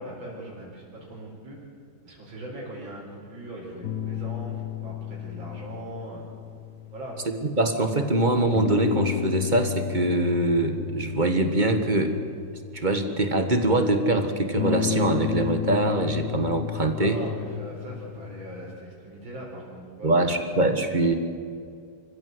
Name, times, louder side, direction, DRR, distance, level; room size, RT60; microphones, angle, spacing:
voice 1, 0.0-1.7 2.0-6.3 6.9-7.2 17.0-20.4, right 1 dB, 85° right, -3 dB, 5.2 m, -40 dB
sound 1, 3.8-7.7 8.5-13.6 14.6-18.8, left 9 dB, 65° left, 1.3 m, -33 dB
voice 2, 7.4-12.1 12.7-17.2 20.0-21.1, right 2 dB, 25° right, 6 dB, 1.6 m, -23 dB
26.5 x 15.0 x 7.9 m, 2.4 s
omnidirectional pair, 2.1 m